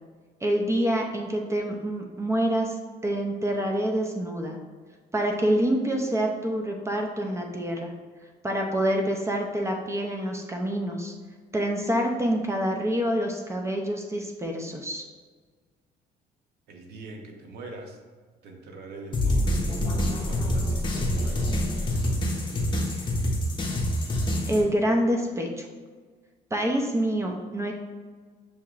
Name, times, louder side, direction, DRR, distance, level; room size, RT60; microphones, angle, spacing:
voice 1, 0.4-2.7 3.0-4.6 5.1-7.9 8.4-11.1 11.5-15.0 24.5-25.7 26.5-27.7, right 1 dB, 15° right, 2 dB, 0.5 m, -26 dB
voice 2, 16.7-18.0 18.4-19.6 20.0-21.5 21.9-23.1, right 2 dB, 75° right, 2 dB, 0.8 m, -44 dB
sound 1, 19.1-24.6, left 1 dB, 30° left, 0.8 m, -26 dB
6.4 x 2.8 x 2.4 m, 1.5 s
cardioid pair, 110°, 17 cm